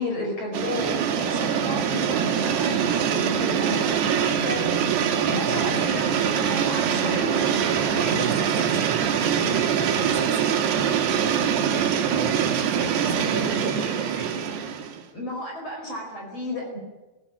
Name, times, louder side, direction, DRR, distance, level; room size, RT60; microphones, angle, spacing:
voice 1, 0.0-4.7 5.3-7.8 12.8-13.2 15.1-16.8, left 1 dB, 35° left, 1 dB, 5.9 m, -33 dB
sound 1, 0.5-15.0, right 8 dB, 80° right, 3.9 m, -24 dB
voice 2, 5.3-6.1 7.9-10.5 11.7-14.4, right 2 dB, 20° right, 1 dB, 7.3 m, -36 dB
19.5 x 17.5 x 9.0 m, 1.1 s
omnidirectional pair, 4.7 m